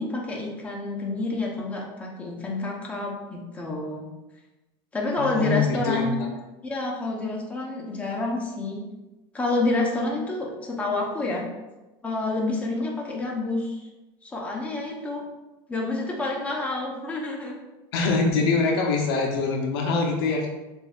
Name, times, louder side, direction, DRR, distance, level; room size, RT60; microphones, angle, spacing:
voice 1, 0.0-4.1 4.9-6.1 6.6-8.8 9.3-11.5 12.0-13.8 14.2-15.2 15.7-17.6, left 2 dB, 10° left, -2 dB, 0.9 m, -28 dB
voice 2, 5.2-6.3 17.9-20.5, left 4 dB, 80° left, 1 dB, 0.8 m, -24 dB
6.7 x 2.7 x 2.4 m, 1.1 s
supercardioid pair, 125°, 12 cm